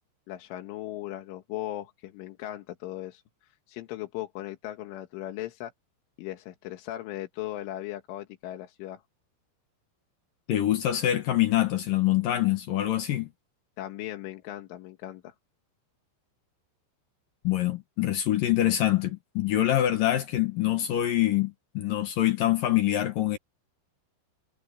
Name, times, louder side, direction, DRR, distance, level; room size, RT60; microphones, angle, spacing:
voice 1, 0.3-3.2 3.7-5.7 6.2-9.0 13.8-15.3, left 14 dB, 90° left, 4.1 m, -38 dB
voice 2, 10.5-13.3 17.4-23.4, left 13 dB, 65° left, 2.4 m, -25 dB
omnidirectional pair, 5.5 m